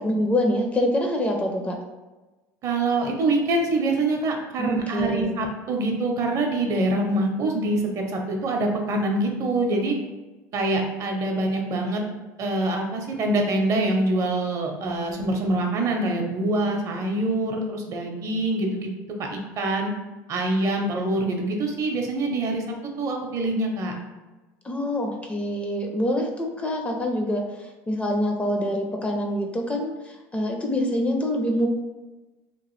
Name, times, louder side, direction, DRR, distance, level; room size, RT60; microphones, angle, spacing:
voice 1, 0.0-1.8 4.6-5.4 24.6-27.4 27.9-29.9 30.3-31.7, left 1 dB, 15° left, 2 dB, 0.4 m, -25 dB
voice 2, 2.6-9.9 10.5-12.0 12.4-18.9 19.2-19.9 20.3-22.6 23.0-23.9, right 2 dB, 45° right, 2 dB, 0.6 m, -25 dB
2.9 x 2.4 x 3.1 m, 1.2 s
supercardioid pair, 105°, 8 cm